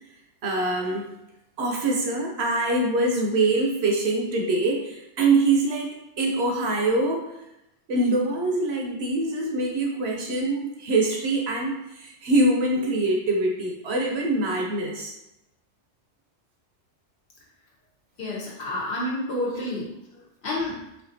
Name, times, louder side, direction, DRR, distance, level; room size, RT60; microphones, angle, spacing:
voice 1, 0.4-1.1 1.6-7.3 7.9-15.1, right 2 dB, 65° right, 1 dB, 0.8 m, -24 dB
voice 2, 18.2-20.7, left 1 dB, 60° left, -4 dB, 1.1 m, -30 dB
4.2 x 2.4 x 2.6 m, 0.87 s
omnidirectional pair, 1.3 m